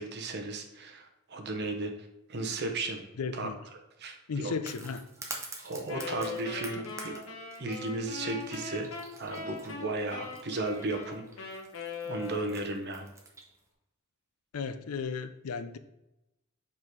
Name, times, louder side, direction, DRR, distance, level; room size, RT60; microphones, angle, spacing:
voice 1, 0.0-1.9 2.3-3.0 3.3-3.5 4.0-4.5 5.6-7.2 7.6-8.9 9.2-11.5 12.0-13.1, right 2 dB, 50° right, 4 dB, 1.0 m, -35 dB
voice 2, 3.2-3.6 4.3-5.1 14.5-15.8, left 5 dB, 85° left, 12 dB, 0.5 m, -35 dB
sound 1, 4.6-13.6, right 3 dB, 15° right, 0.8 m, -46 dB
Wind instrument woodwind instrument, 5.9-12.8, left 4 dB, 70° left, 1.1 m, -41 dB
5.5 x 4.8 x 4.6 m, 0.93 s
head